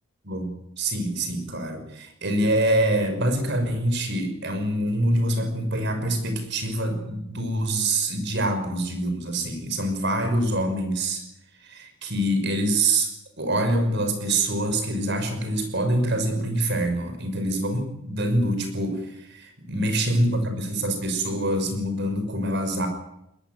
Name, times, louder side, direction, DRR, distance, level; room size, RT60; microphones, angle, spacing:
voice 1, 0.8-11.2 11.6-13.1 13.4-22.9, right 1 dB, 50° right, 7 dB, 5.9 m, -25 dB
21.0 x 21.0 x 9.4 m, 0.82 s
head